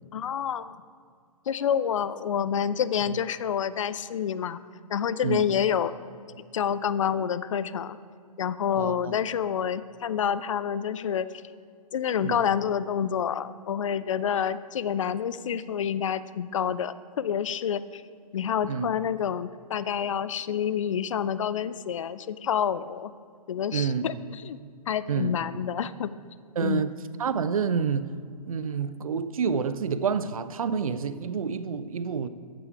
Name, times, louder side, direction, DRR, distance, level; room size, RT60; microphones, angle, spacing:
voice 1, 0.1-0.8 1.5-4.6 4.9-5.9 6.5-8.0 8.4-11.3 11.9-18.0 18.3-23.1 23.5-24.6 24.9-26.1 26.6-26.9, left 8 dB, 55° left, 0.4 m, -28 dB
voice 2, 8.8-9.1 12.2-12.4 18.7-18.9 23.7-24.1 25.1-25.4 26.6-26.9 27.2-28.1 28.5-32.3, right 6 dB, 65° right, 0.6 m, -28 dB
14.5 x 6.2 x 4.7 m
figure-of-eight pair, 120°, 20 cm